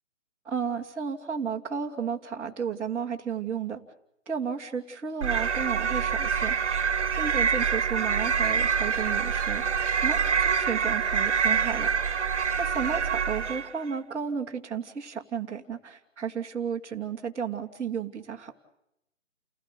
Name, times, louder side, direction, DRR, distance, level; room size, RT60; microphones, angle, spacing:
voice 1, 0.4-3.8 4.3-6.6 7.2-9.6 10.0-11.9 12.6-18.5, right 6 dB, 5° right, -7 dB, 1.0 m, -33 dB
sound 1, 5.2-13.8, right 6 dB, 60° right, 1.1 m, -26 dB
29.5 x 17.0 x 6.7 m, 0.81 s
figure-of-eight pair, 140°, 39 cm